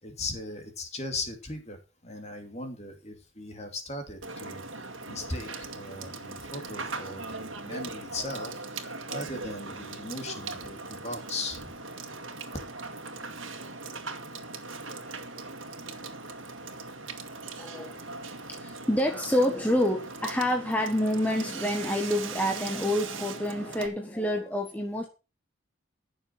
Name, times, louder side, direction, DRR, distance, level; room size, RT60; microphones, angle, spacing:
voice 1, 0.0-4.6 5.1-11.7, left 2 dB, 35° left, 5 dB, 2.9 m, -38 dB
Water / Water tap faucet / Sink (filling or washing), 4.2-23.9, right 3 dB, 70° right, 2.0 m, -39 dB
voice 2, 17.6-18.0 18.5-25.1, left 1 dB, 5° left, 2 dB, 1.4 m, -28 dB
15.0 x 6.9 x 6.2 m, 0.32 s
head